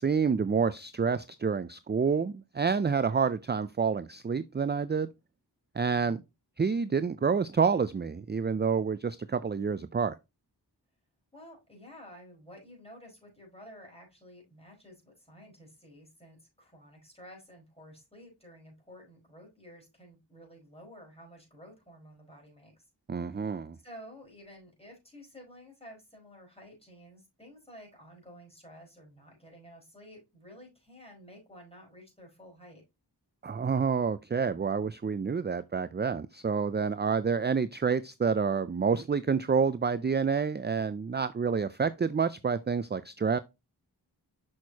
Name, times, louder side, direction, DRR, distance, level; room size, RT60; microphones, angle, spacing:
voice 1, 0.0-5.1 5.8-6.2 6.6-10.1 23.1-23.8 33.4-43.4, right 5 dB, 25° right, 0.4 m, -28 dB
voice 2, 11.3-22.8 23.3-32.8, equal, 15° left, 4.8 m, -52 dB
6.4 x 6.2 x 2.8 m
wide cardioid pair, 45°, 41 cm